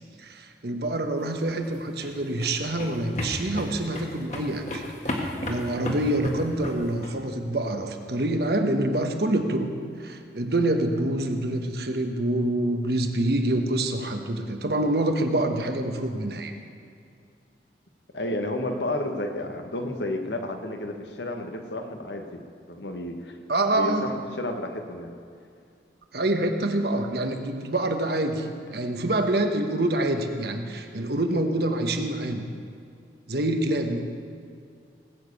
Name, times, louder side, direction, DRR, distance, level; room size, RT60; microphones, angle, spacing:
voice 1, 0.2-9.7 10.0-16.5 23.5-24.1 26.1-32.4 33.3-34.0, right 1 dB, 65° right, 5 dB, 1.3 m, -26 dB
sound 1, 1.5-7.1, left 1 dB, 40° left, 1.7 m, -33 dB
voice 2, 18.1-22.4 22.7-23.3 23.7-25.1, left 1 dB, 80° left, 5 dB, 1.5 m, -31 dB
18.5 x 7.4 x 8.4 m, 2.3 s
head